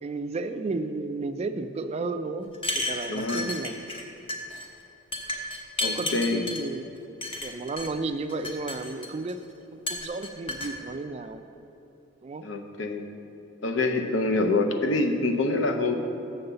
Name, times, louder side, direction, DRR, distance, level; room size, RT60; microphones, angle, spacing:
voice 1, 0.0-2.5 2.7-3.8 5.8-6.9 7.4-9.4 9.7-11.4 12.2-12.5, right 3 dB, 35° right, 9 dB, 0.3 m, -33 dB
sound 1, 2.5-4.0 4.3-4.7 5.1-6.6 7.2-7.9 8.3-9.3 9.9-10.7, left 2 dB, 30° left, 0.8 m, -32 dB
voice 2, 3.1-3.5 5.8-6.5 12.4-13.0 13.6-16.0, left 2 dB, 80° left, 5 dB, 0.7 m, -26 dB
7.1 x 5.4 x 6.8 m, 2.9 s
head